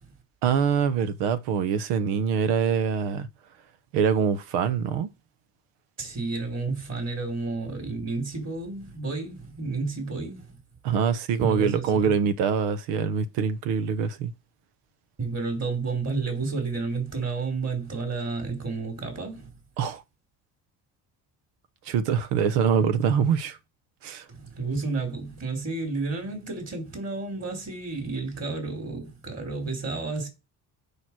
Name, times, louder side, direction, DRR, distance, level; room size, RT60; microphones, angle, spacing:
voice 1, 0.4-3.3 3.9-5.1 10.8-14.3 19.8-20.0 21.9-23.6 24.0-24.2, right 7 dB, 80° right, 1.1 m, -24 dB
voice 2, 6.0-10.5 11.4-12.1 15.2-19.5 24.3-30.3, right 3 dB, 40° right, 4.4 m, -31 dB
6.9 x 5.0 x 6.2 m
supercardioid pair, 80°, 41 cm